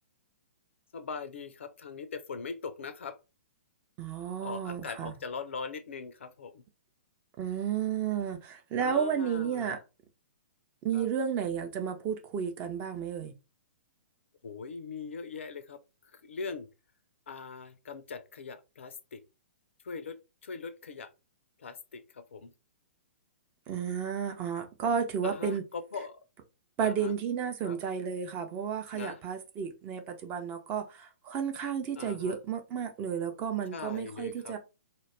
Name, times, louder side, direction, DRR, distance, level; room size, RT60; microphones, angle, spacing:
voice 1, 0.9-3.2 4.4-6.6 8.8-9.8 10.9-11.1 14.4-15.8 16.1-16.7 17.3-19.2 19.8-21.1 21.6-22.5 25.2-26.2 26.8-27.1 27.6-27.8 28.9-29.2 32.0-32.4 33.7-34.5, left 5 dB, 65° left, 0.4 m, -41 dB
voice 2, 4.0-5.1 7.4-9.8 10.8-13.3 23.7-25.6 26.8-34.6, right 7 dB, 25° right, 0.5 m, -32 dB
2.3 x 2.0 x 3.2 m
figure-of-eight pair, 115°, 7 cm